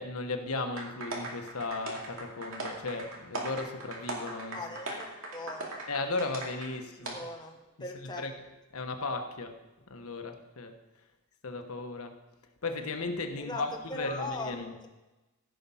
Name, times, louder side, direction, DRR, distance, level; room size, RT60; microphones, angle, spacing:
voice 1, 0.0-4.6 5.9-7.1 8.0-8.3 8.7-9.6 9.9-10.8 11.4-12.2 12.6-14.8, left 3 dB, 85° left, 6 dB, 1.2 m, -36 dB
sound 1, 0.8-6.7 7.0-7.1, right 2 dB, 70° right, 2.4 m, -39 dB
voice 2, 4.5-5.8 7.0-8.2 13.4-14.5, left 2 dB, 20° left, 2 dB, 1.3 m, -40 dB
15.5 x 6.0 x 5.5 m, 1.1 s
head